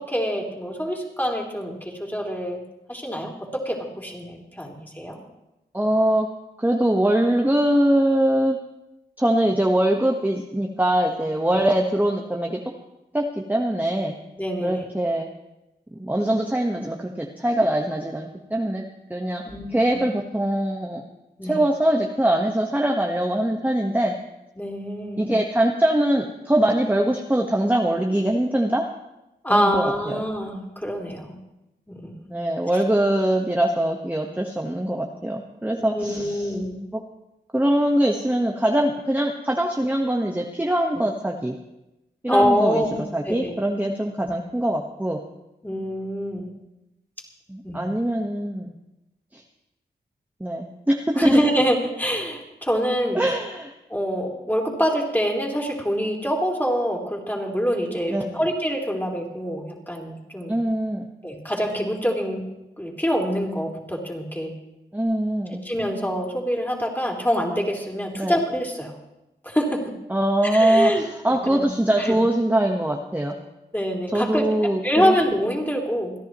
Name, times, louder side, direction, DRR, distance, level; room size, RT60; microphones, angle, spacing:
voice 1, 0.0-2.6 2.9-5.2 11.5-11.7 14.4-14.9 19.4-20.0 21.4-21.6 24.6-25.3 29.4-31.3 31.9-32.3 35.9-36.8 42.3-43.0 43.2-43.5 44.2-44.3 45.6-46.5 47.6-47.9 51.2-53.2 53.9-60.5 61.2-62.4 62.8-64.5 65.6-68.9 69.4-69.8 70.4-71.0 71.5-71.7 72.0-72.2 73.7-74.5 74.8-76.1, equal, 10° left, -1 dB, 3.7 m, -25 dB
voice 2, 5.7-6.3 6.6-8.6 9.2-12.6 13.1-14.1 14.6-15.3 15.9-18.8 19.1-19.4 19.7-21.0 21.4-24.1 25.2-28.9 29.5-30.2 32.3-36.5 36.9-37.0 37.5-41.5 42.2-42.8 43.1-45.2 47.5-48.7 49.3-49.4 50.4-51.4 53.1-53.7 58.1-58.4 60.5-61.1 64.9-65.6 68.2-68.4 70.1-73.3 74.1-75.1, right 1 dB, 10° right, 1 dB, 1.3 m, -22 dB
28.5 x 10.5 x 3.1 m, 0.93 s
cardioid pair, 45°, 18 cm